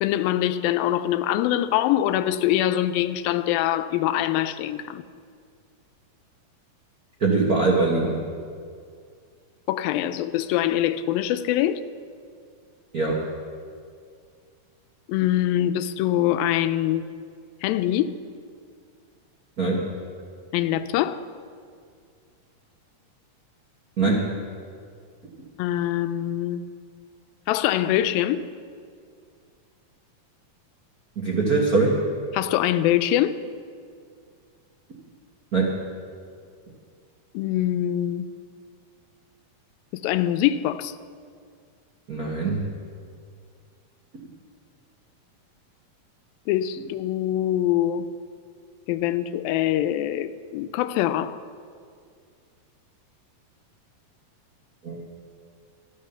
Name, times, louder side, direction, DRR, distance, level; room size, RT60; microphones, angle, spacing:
voice 1, 0.0-5.0 9.7-11.8 15.1-17.0 17.6-18.2 20.5-21.2 25.6-26.6 27.5-28.4 32.3-33.3 37.3-38.3 40.0-40.9 46.5-48.1 48.9-51.4, left 12 dB, 85° left, 2.4 m, -24 dB
voice 2, 7.2-8.2 12.9-13.2 19.6-19.8 24.0-24.3 31.1-32.0 35.5-35.7 42.1-42.6 44.1-44.2 54.8-55.0, right 3 dB, 75° right, 0.8 m, -22 dB
13.5 x 10.5 x 6.9 m
omnidirectional pair, 4.1 m